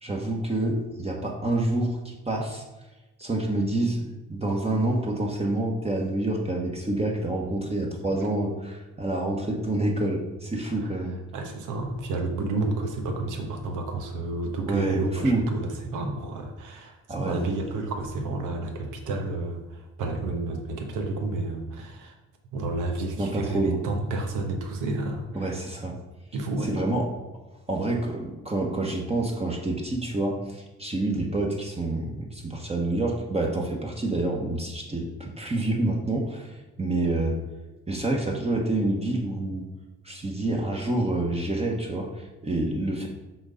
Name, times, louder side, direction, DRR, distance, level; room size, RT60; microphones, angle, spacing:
voice 1, 0.0-2.6 3.2-11.2 14.7-15.5 17.1-17.5 23.2-23.8 25.3-26.0 26.6-27.1 27.7-37.4 37.9-39.7 40.0-43.1, right 2 dB, 20° right, -1 dB, 1.1 m, -27 dB
voice 2, 11.3-22.1 22.5-25.6 26.3-26.7, right 2 dB, 85° right, 3 dB, 1.2 m, -30 dB
6.2 x 3.8 x 5.1 m, 1.1 s
cardioid pair, 90°, 30 cm